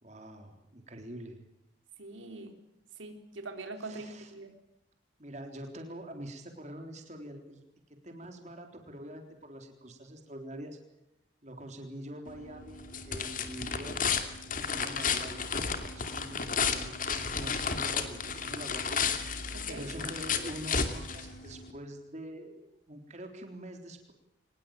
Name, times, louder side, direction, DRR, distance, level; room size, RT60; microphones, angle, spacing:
voice 1, 0.0-1.4 3.8-4.3 5.2-7.6 8.0-10.8 11.4-14.0 14.5-15.4 15.7-24.1, right 1 dB, 35° right, 4 dB, 3.7 m, -45 dB
voice 2, 2.0-2.6 3.0-4.5 19.5-19.9, right 2 dB, 90° right, 5 dB, 3.7 m, -43 dB
sound 1, 12.3-21.7, left 6 dB, 45° left, 2.6 m, -33 dB
24.0 x 21.0 x 9.0 m, 0.82 s
head